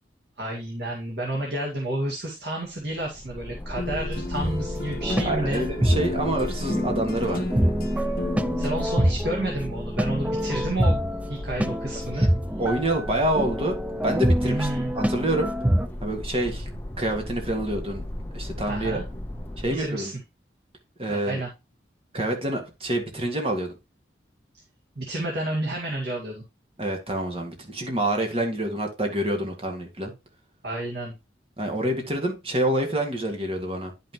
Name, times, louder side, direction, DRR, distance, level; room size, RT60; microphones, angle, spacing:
voice 1, 0.4-5.6 8.6-12.3 14.4-14.9 18.6-19.0 19.6-20.1 21.1-21.5 25.0-26.4 30.6-31.1, right 1 dB, 65° right, 2.0 m, -30 dB
sound 1, 2.7-19.9, left 1 dB, 10° left, 1.0 m, -36 dB
sound 2, 3.8-8.7, left 2 dB, 55° left, 1.3 m, -33 dB
sound 3, 4.4-15.9, equal, 5° right, 0.3 m, -26 dB
voice 2, 5.2-7.8 12.1-12.3 12.6-13.8 14.0-14.7 14.9-15.5 16.0-16.6 17.0-18.0 18.3-19.0 19.6-20.1 21.0-21.4 22.1-23.7 26.8-30.1 31.6-33.9, right 1 dB, 30° right, 1.9 m, -27 dB
10.0 x 5.7 x 3.0 m
head